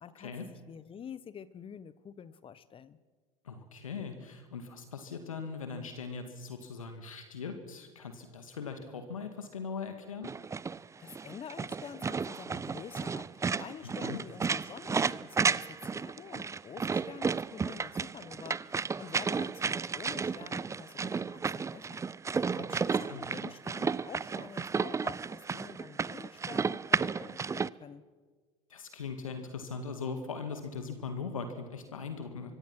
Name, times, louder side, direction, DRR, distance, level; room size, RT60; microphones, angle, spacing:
voice 1, 0.0-3.0 11.0-22.1 22.5-28.0, left 7 dB, 30° left, 16 dB, 1.2 m, -48 dB
voice 2, 3.4-10.3 13.8-14.2 22.6-23.3 28.7-32.6, left 5 dB, 80° left, 7 dB, 2.1 m, -40 dB
sound 1, 10.2-27.7, right 5 dB, 15° right, 0.6 m, -33 dB
25.0 x 23.5 x 6.0 m, 1.4 s
figure-of-eight pair, 70°, 17 cm